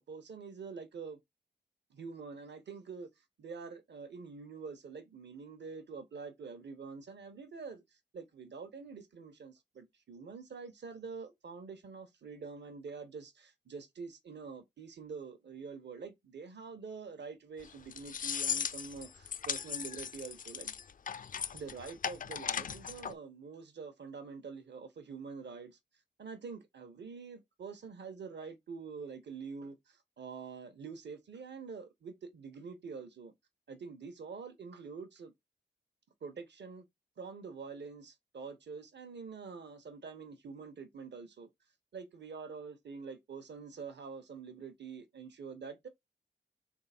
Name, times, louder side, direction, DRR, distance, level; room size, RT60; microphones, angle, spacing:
voice 1, 0.1-1.2 1.9-3.1 3.4-20.7 21.5-25.8 26.2-33.3 33.7-35.3 36.2-36.9 37.2-41.5 41.9-45.9, right 5 dB, 70° right, 1.0 m, -46 dB
sound 1, 17.6-23.1, left 7 dB, 45° left, 0.4 m, -38 dB
3.6 x 3.4 x 4.2 m
cardioid pair, 45°, 19 cm